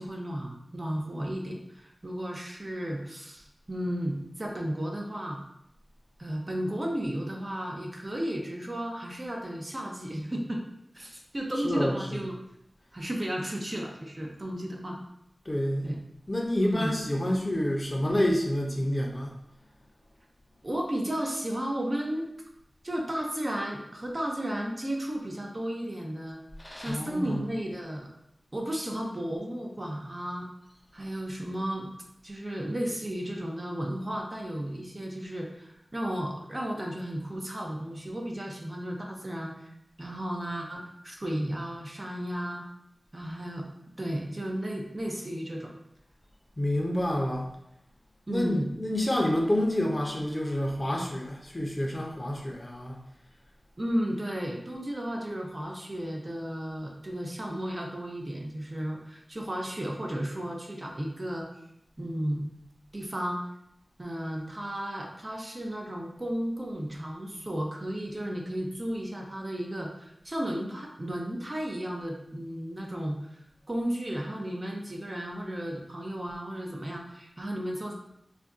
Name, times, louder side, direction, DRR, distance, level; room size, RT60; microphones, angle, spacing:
voice 1, 0.0-5.4 6.2-10.6 10.9-12.4 12.9-15.0 15.8-16.0 16.6-16.9 20.6-22.3 22.8-26.4 26.8-28.1 28.5-30.5 30.9-31.9 32.2-39.7 40.0-42.6 43.1-43.6 44.0-45.7 48.3-48.7 53.8-61.5 62.0-62.4 62.9-63.4 64.0-73.3 73.7-77.9, equal, 40° right, -1 dB, 0.6 m, -34 dB
voice 2, 11.6-12.3 15.5-15.9 16.3-19.3 26.6-27.4 46.6-47.5 48.3-52.9, left 1 dB, 30° left, 0 dB, 0.6 m, -28 dB
2.5 x 2.2 x 3.6 m, 0.78 s
cardioid pair, 40°, 0 cm